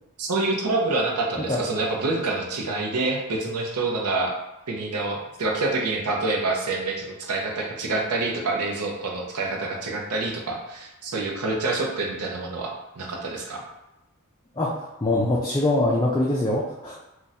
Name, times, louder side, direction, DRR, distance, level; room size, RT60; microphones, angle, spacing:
voice 1, 0.2-4.3 4.7-13.6, right 3 dB, 80° right, 1 dB, 0.6 m, -27 dB
voice 2, 15.0-17.0, left 2 dB, 15° left, -4 dB, 0.4 m, -23 dB
2.5 x 2.3 x 4.0 m, 0.95 s
head